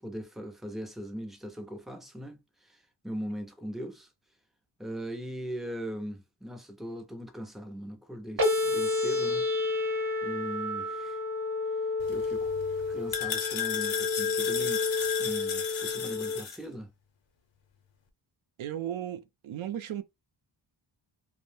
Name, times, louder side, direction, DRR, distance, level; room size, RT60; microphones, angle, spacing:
voice 1, 0.0-4.1 4.8-9.5 10.2-11.2 12.1-12.5 12.9-14.8 15.2-16.9, equal, ahead, 0.3 m, -40 dB
sound 1, 8.4-16.4, left 3 dB, 50° right, 0.8 m, -30 dB
sound 2, 12.0-16.6, left 8 dB, 70° left, 0.7 m, -34 dB
voice 2, 18.6-20.0, right 10 dB, 85° right, 0.6 m, -35 dB
2.6 x 2.0 x 3.1 m
wide cardioid pair, 165°, 47 cm